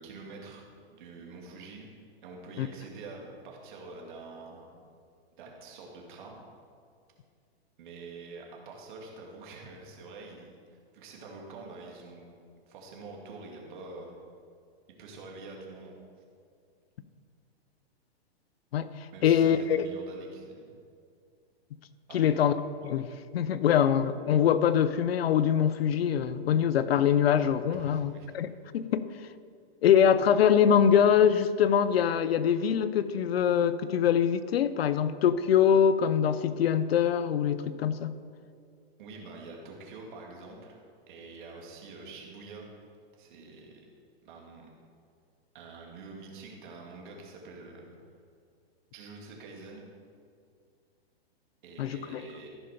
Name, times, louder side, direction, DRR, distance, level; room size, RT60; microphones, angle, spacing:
voice 1, 0.0-1.9 2.2-4.7 5.3-6.4 7.8-12.2 12.7-14.2 15.0-16.0 19.1-20.7 22.1-22.4 27.7-28.3 39.0-40.7 41.1-42.7 43.2-43.8 44.2-44.7 45.5-48.0 48.9-49.9 51.6-52.5, right 3 dB, 50° right, -1 dB, 2.4 m, -46 dB
voice 2, 18.7-19.9 22.1-22.5 22.8-29.1 29.8-38.1 51.8-52.2, left 8 dB, 70° left, 14 dB, 0.6 m, -24 dB
14.5 x 5.7 x 5.0 m, 2.3 s
hypercardioid pair, 155°, 32 cm